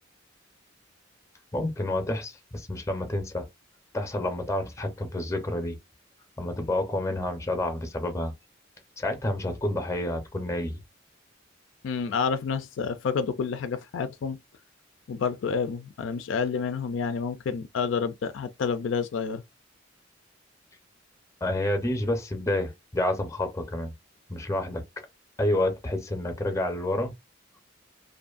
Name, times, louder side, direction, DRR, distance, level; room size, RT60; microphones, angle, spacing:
voice 1, 1.5-3.5 3.9-5.8 6.4-8.3 9.0-10.8 21.4-23.9 24.3-24.8 25.4-27.1, left 1 dB, 15° left, 0.6 m, -29 dB
voice 2, 11.8-14.4 15.1-19.4, left 5 dB, 70° left, 0.4 m, -29 dB
2.5 x 2.5 x 2.4 m
head